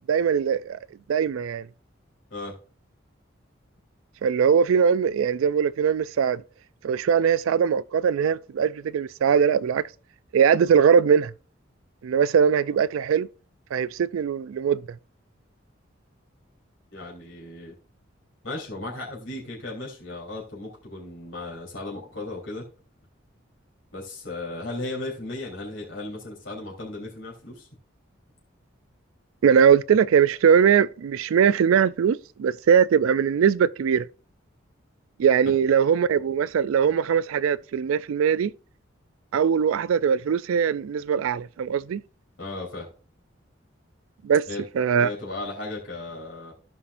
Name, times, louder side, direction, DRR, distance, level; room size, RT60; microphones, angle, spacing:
voice 1, 0.1-0.8 1.1-1.7 4.2-6.4 6.8-9.8 10.3-11.3 12.0-13.3 13.7-14.8 29.4-34.1 35.2-38.5 39.3-42.0 44.2-44.4 44.8-45.1, right 7 dB, 85° right, 0.3 m, -21 dB
voice 2, 16.9-17.7 18.4-22.7 23.9-27.7 35.4-35.5 42.4-42.9 44.5-44.6 45.0-46.5, left 2 dB, 80° left, 3.6 m, -36 dB
15.5 x 5.7 x 2.5 m
head